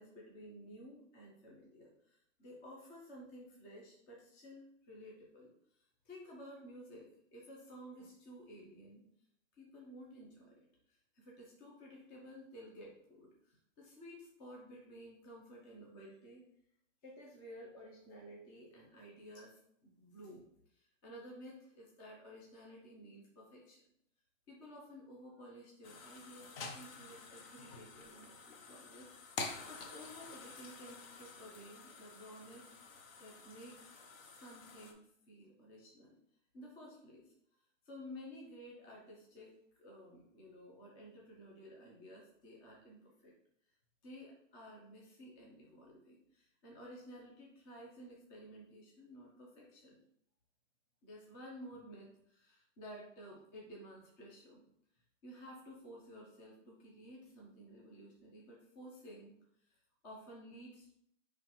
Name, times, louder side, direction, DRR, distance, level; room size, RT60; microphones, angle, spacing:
voice 1, 0.0-9.0 9.5-16.5 17.0-20.4 20.7-23.8 24.5-32.7 33.2-35.0 35.3-36.2 36.5-37.3 37.9-43.3 44.0-50.0 51.0-54.6 55.2-60.9, equal, 15° left, -3 dB, 0.5 m, -54 dB
sound 1, 25.8-34.9, left 4 dB, 50° left, 0.7 m, -49 dB
5.5 x 3.1 x 2.9 m, 0.72 s
hypercardioid pair, 160°, 38 cm